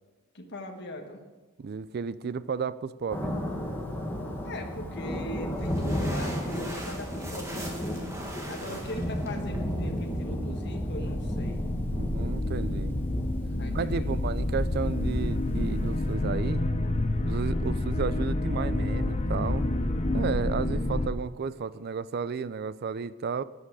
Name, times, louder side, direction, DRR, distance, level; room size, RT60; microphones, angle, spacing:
voice 1, 0.3-1.2 4.4-7.7 8.5-11.7 13.6-14.2, left 1 dB, 50° left, 3 dB, 1.3 m, -40 dB
voice 2, 1.6-3.3 8.7-8.8 11.9-13.0 13.7-16.6 17.3-19.7 20.1-23.4, right 5 dB, 45° right, 16 dB, 0.4 m, -33 dB
Thunder, 3.1-16.1, equal, 10° left, 1.3 m, -34 dB
sound 1, 5.2-10.2, right 1 dB, 15° right, 1.6 m, -42 dB
sound 2, 11.0-21.1, left 1 dB, 30° left, 0.6 m, -28 dB
13.0 x 8.9 x 4.8 m, 1.2 s
head